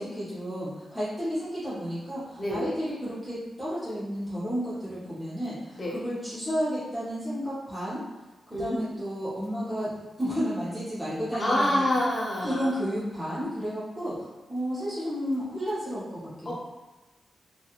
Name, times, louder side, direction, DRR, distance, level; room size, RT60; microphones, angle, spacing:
voice 1, 0.0-8.0 8.6-11.9 12.4-14.2 14.5-16.5, equal, 5° right, -12 dB, 1.0 m, -32 dB
voice 2, 2.4-2.7 5.8-6.0 8.5-8.9 11.3-12.7 16.4-16.5, left 1 dB, 25° left, -4 dB, 0.7 m, -27 dB
2.9 x 2.4 x 2.9 m, 1.1 s
wide cardioid pair, 120°, 0 cm